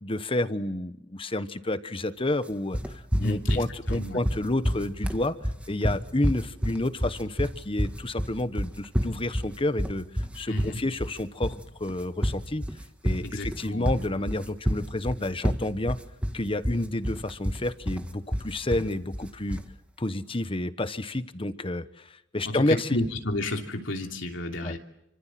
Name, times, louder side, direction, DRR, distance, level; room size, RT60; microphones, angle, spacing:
voice 1, 0.0-2.8 3.2-5.4 5.7-12.6 13.0-16.0 16.3-19.6 20.0-23.0 24.6-24.8, left 1 dB, 30° left, 12 dB, 1.2 m, -30 dB
sound 1, 2.7-19.7, equal, 5° right, 1.7 m, -29 dB
voice 2, 3.2-4.2 10.5-10.8 13.2-13.9 22.4-24.8, left 1 dB, 90° left, 3 dB, 3.1 m, -31 dB
29.0 x 25.5 x 7.7 m, 0.83 s
head